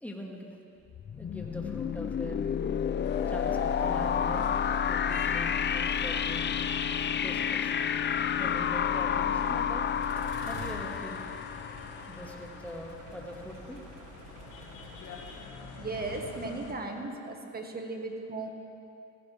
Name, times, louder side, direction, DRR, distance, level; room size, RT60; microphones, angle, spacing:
voice 1, 0.0-0.5 1.2-2.4 3.3-4.5 4.9-6.5 7.2-7.7 8.4-9.9 10.4-11.3 12.1-13.8, equal, 5° left, 0 dB, 1.8 m, -42 dB
sound 1, 0.9-12.6, left 8 dB, 35° left, 0.5 m, -30 dB
sound 2, 3.0-16.7, left 4 dB, 85° left, 1.6 m, -46 dB
sound 3, 9.3-15.4, right 3 dB, 85° right, 1.5 m, -49 dB
voice 2, 15.8-18.5, right 3 dB, 30° right, 3 dB, 1.6 m, -36 dB
15.5 x 15.5 x 3.4 m, 2.6 s
cardioid pair, 90°, 30 cm